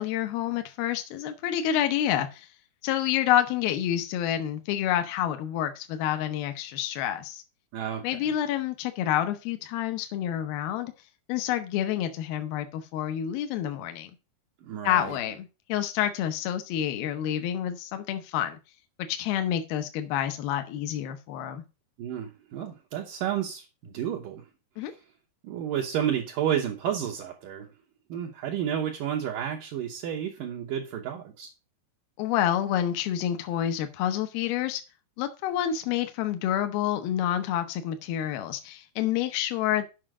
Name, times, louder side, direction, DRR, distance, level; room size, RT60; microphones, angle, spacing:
voice 1, 0.0-2.5 2.8-7.4 8.0-10.9 11.3-14.1 14.8-18.6 19.1-21.6 24.8-24.9 32.2-34.8 35.2-39.9, left 11 dB, 75° left, 2.6 m, -28 dB
voice 2, 7.7-8.1 14.6-15.2 22.0-24.5 24.8-25.0 25.4-27.7 28.1-31.5, right 9 dB, 70° right, 2.3 m, -31 dB
7.7 x 5.7 x 6.0 m
omnidirectional pair, 4.6 m